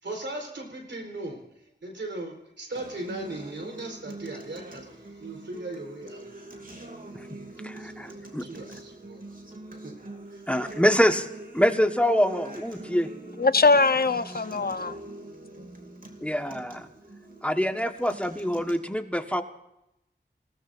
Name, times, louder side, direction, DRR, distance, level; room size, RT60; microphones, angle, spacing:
voice 1, 0.0-6.3 7.7-9.5 9.8-9.9 10.3-10.4, right 2 dB, 90° right, 1 dB, 4.4 m, -38 dB
Acoustic guitar, 2.8-18.8, right 2 dB, 50° right, 2.9 m, -43 dB
voice 2, 7.6-8.5 10.5-11.3 11.5-13.1 16.2-16.8 17.4-19.4, equal, 5° left, 6 dB, 1.5 m, -25 dB
voice 3, 13.4-15.0, left 3 dB, 55° left, 12 dB, 0.9 m, -21 dB
28.0 x 18.0 x 2.7 m, 0.86 s
wide cardioid pair, 55°, 18 cm